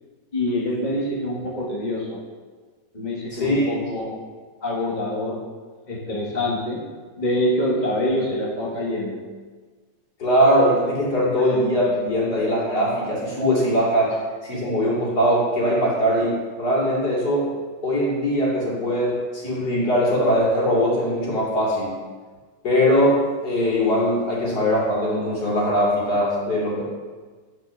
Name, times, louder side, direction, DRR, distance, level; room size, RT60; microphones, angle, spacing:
voice 1, 0.3-2.2 2.9-4.1 4.6-5.4 5.9-6.8 7.2-9.2 11.4-11.5, left 1 dB, 25° left, -4 dB, 1.3 m, -25 dB
voice 2, 3.3-3.7 10.2-14.1 14.4-17.5 17.8-22.0 22.6-26.9, equal, 55° left, -6 dB, 3.2 m, -21 dB
9.8 x 4.9 x 6.2 m, 1.4 s
omnidirectional pair, 2.0 m